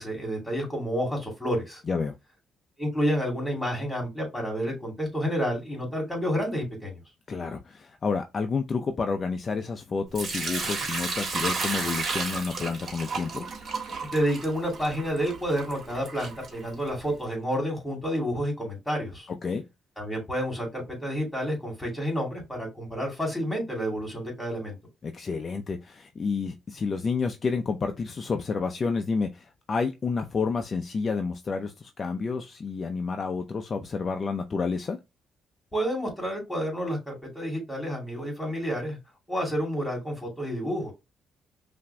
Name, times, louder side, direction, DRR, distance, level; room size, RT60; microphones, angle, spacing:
voice 1, 0.0-1.8 2.8-7.0 14.1-19.3 20.0-24.8 35.7-39.0 39.3-40.9, equal, 10° left, 2.7 m, -29 dB
voice 2, 7.3-13.5 19.3-19.6 25.0-35.0, left 4 dB, 40° left, 0.5 m, -30 dB
Sink (filling or washing) / Liquid, 10.1-17.1, right 4 dB, 50° right, 1.5 m, -33 dB
5.6 x 2.6 x 2.2 m
cardioid pair, 90°, 0 cm